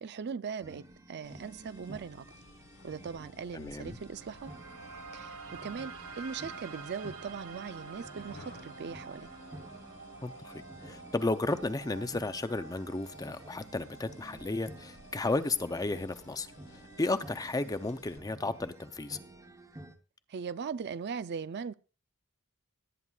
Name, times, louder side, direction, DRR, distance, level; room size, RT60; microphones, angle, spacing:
voice 1, 0.0-2.3 2.8-4.5 5.1-9.3 20.3-21.7, right 6 dB, 50° right, 0.4 m, -39 dB
sound 1, 0.6-20.0, right 1 dB, 15° right, 1.0 m, -52 dB
sound 2, 1.2-18.2, left 3 dB, 60° left, 1.1 m, -57 dB
voice 2, 3.5-4.0 10.2-19.2, left 2 dB, 15° left, 0.5 m, -33 dB
sound 3, 3.5-19.5, right 4 dB, 75° right, 1.6 m, -50 dB
18.0 x 9.6 x 2.4 m
head